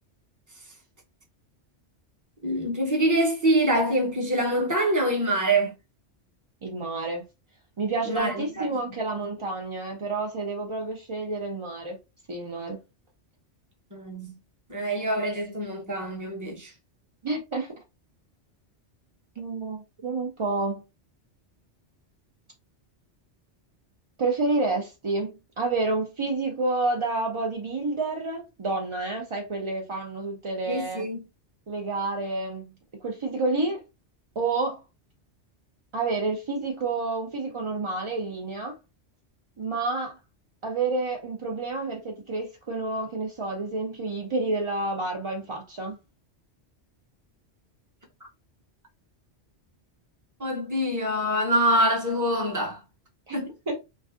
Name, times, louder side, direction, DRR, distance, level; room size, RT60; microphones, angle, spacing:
voice 1, 2.4-5.7 8.0-8.6 13.9-14.4 14.7-16.7 30.7-31.2 50.4-52.8 53.3-53.5, right 1 dB, 20° right, 0.7 m, -25 dB
voice 2, 6.6-7.2 7.8-12.0 12.3-12.8 17.2-17.7 19.4-20.8 24.2-31.0 31.7-32.7 33.0-33.8 34.4-34.8 35.9-38.8 39.6-40.2 40.6-46.0 53.3-53.4 53.7-53.8, right 3 dB, 45° right, 0.4 m, -29 dB
3.2 x 2.5 x 2.4 m
omnidirectional pair, 1.2 m